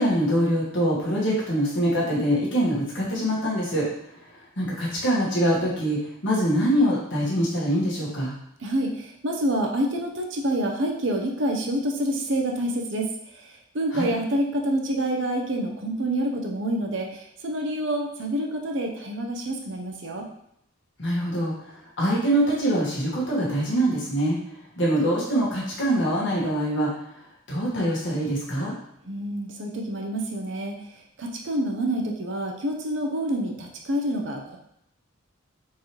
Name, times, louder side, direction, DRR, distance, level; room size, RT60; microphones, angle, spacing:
voice 1, 0.0-3.8 4.6-8.3 13.9-14.1 21.0-21.5 22.0-24.4 24.8-26.9 27.5-28.7, equal, 55° left, -5 dB, 1.5 m, -24 dB
voice 2, 8.6-13.1 13.7-20.3 29.0-30.8 31.2-34.6, right 1 dB, 60° right, 1 dB, 0.7 m, -27 dB
4.5 x 3.2 x 3.0 m, 0.75 s
head